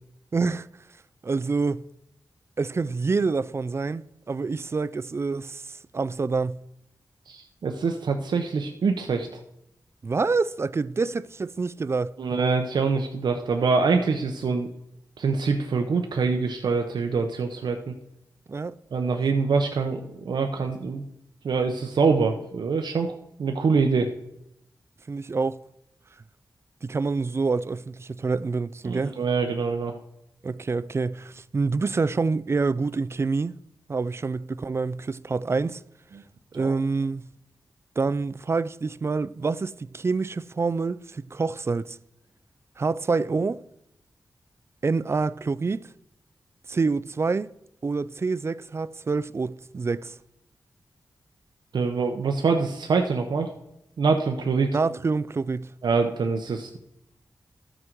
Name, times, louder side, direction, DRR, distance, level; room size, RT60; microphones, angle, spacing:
voice 1, 0.3-0.7 1.2-1.8 2.6-5.6 5.9-6.6 10.0-12.2 18.5-18.7 25.1-25.6 26.8-29.1 30.4-33.6 33.9-35.8 36.5-37.3 38.0-42.0 42.8-43.6 44.8-45.8 46.7-47.5 47.8-50.1 54.7-55.7, right 4 dB, 35° right, 0.3 m, -27 dB
voice 2, 7.3-9.4 12.2-14.7 15.2-17.9 18.9-21.0 21.4-23.1 23.4-24.1 28.8-29.9 36.5-36.7 51.7-53.5 54.0-54.8 55.8-56.8, right 4 dB, 80° right, 0.8 m, -25 dB
13.0 x 6.3 x 4.5 m
wide cardioid pair, 80°, 7 cm